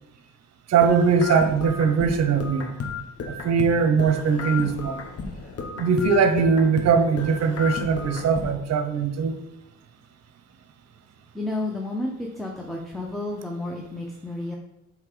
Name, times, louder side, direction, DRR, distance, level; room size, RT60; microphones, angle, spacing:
voice 1, 0.7-2.7 3.3-5.0 5.7-9.4, right 5 dB, 60° right, 9 dB, 0.9 m, -21 dB
sound 1, 0.8-3.7 4.0-6.9 7.2-8.5, left 5 dB, 50° left, 1.2 m, -33 dB
voice 2, 11.3-14.6, left 2 dB, ahead, 0 dB, 0.9 m, -31 dB
7.4 x 3.4 x 5.0 m, 0.85 s
cardioid pair, 90°, 30 cm